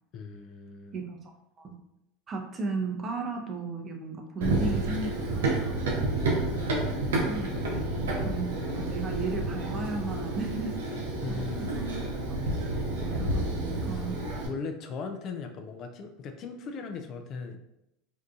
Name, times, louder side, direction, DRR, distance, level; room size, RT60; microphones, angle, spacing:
voice 1, 0.1-1.0 4.4-4.7 6.8-7.1 11.2-11.8 13.5-13.6 13.9-14.1 14.5-17.6, left 4 dB, 45° left, 6 dB, 0.3 m, -38 dB
voice 2, 0.9-1.3 1.6-1.7 2.3-6.5 7.2-10.8 11.3-12.1 12.4-14.2, right 3 dB, 35° right, 2 dB, 0.6 m, -35 dB
Run, 4.4-14.5, right 2 dB, 85° right, 0.6 m, -30 dB
2.7 x 2.4 x 2.3 m, 0.84 s
hypercardioid pair, 90°, 0 cm